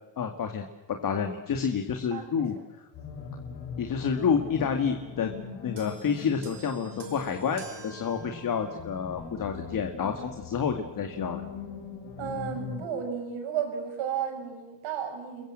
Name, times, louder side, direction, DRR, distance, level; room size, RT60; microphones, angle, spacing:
voice 1, 0.2-2.6 3.8-5.3 5.6-11.4, left 6 dB, 45° left, 5 dB, 2.2 m, -29 dB
voice 2, 2.1-2.4 12.2-15.5, right 8 dB, 85° right, 5 dB, 6.7 m, -33 dB
sound 1, 2.9-12.9, left 6 dB, 75° left, 5.7 m, -41 dB
sound 2, 5.8-9.4 10.3-10.4, right 5 dB, 60° right, 4.9 m, -47 dB
30.0 x 22.0 x 7.6 m, 1.1 s
cardioid pair, 135°, 46 cm